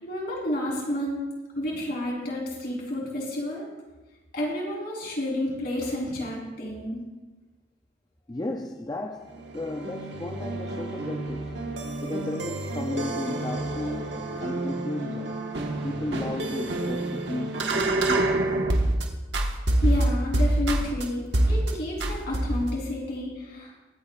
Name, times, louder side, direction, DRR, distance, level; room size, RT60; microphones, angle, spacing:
voice 1, 0.0-1.2 1.6-3.7 4.3-7.0 19.8-23.7, left 1 dB, 60° left, 3.8 m, -30 dB
voice 2, 8.3-11.5 12.0-14.1 14.4-15.4 15.8-18.5, left 1 dB, 20° left, 0.5 m, -34 dB
sound 1, 9.3-19.0 19.3-21.0 21.3-21.7 22.0-22.8, right 1 dB, 70° right, 1.4 m, -27 dB
22.0 x 9.0 x 2.5 m
head